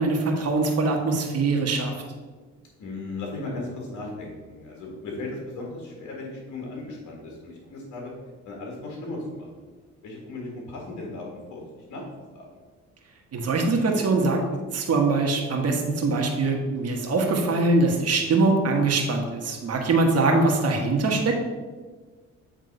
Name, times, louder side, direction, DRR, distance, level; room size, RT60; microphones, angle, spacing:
voice 1, 0.0-1.9 13.3-14.4 14.7-21.4, right 3 dB, 55° right, 1 dB, 1.5 m, -23 dB
voice 2, 2.8-8.1 8.5-9.5 10.0-11.6 11.9-12.0 12.3-12.5, left 2 dB, 70° left, -1 dB, 1.8 m, -36 dB
7.9 x 3.6 x 5.4 m, 1.4 s
cardioid pair, 90°, 30 cm